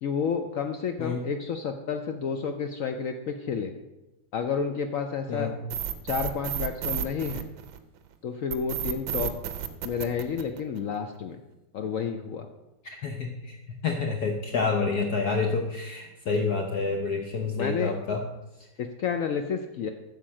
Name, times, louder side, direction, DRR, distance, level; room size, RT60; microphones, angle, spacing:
voice 1, 0.0-3.7 4.3-5.5 6.0-7.4 8.2-9.3 9.8-11.4 11.7-12.5 17.6-17.9 18.8-19.9, left 6 dB, 90° left, 6 dB, 0.7 m, -30 dB
sound 1, 5.7-8.0 8.5-11.0, right 10 dB, 75° right, 1.5 m, -31 dB
voice 2, 13.8-18.2, left 4 dB, 60° left, 3 dB, 1.2 m, -28 dB
9.1 x 6.6 x 6.3 m, 0.98 s
omnidirectional pair, 2.2 m